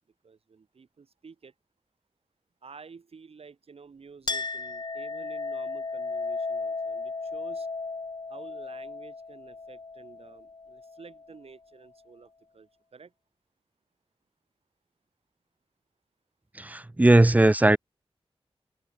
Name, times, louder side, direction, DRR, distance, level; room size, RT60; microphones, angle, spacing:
voice 1, 0.2-1.5 2.6-7.7 8.3-13.1, right 5 dB, 70° right, 4.9 m, -50 dB
Chink clink, 4.3-11.3, left 3 dB, 45° left, 3.1 m, -35 dB
voice 2, 16.6-17.8, right 1 dB, 15° right, 0.5 m, -18 dB
wide cardioid pair, 115°, 10 cm